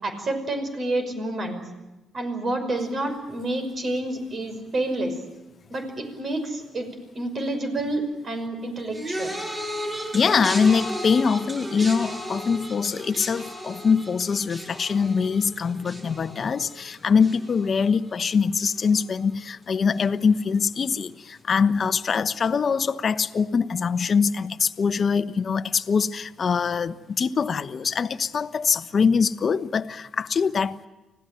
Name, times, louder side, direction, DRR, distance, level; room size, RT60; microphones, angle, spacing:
voice 1, 0.0-1.6 2.1-5.2 5.7-6.9 7.1-9.3, right 2 dB, 45° right, 5.7 m, -29 dB
sound 1, 8.9-18.3 18.6-19.1 20.0-20.1, equal, 25° right, 7.6 m, -35 dB
voice 2, 10.1-30.8, left 5 dB, 45° left, 1.0 m, -23 dB
25.5 x 17.0 x 9.3 m
cardioid pair, 90°, 0 cm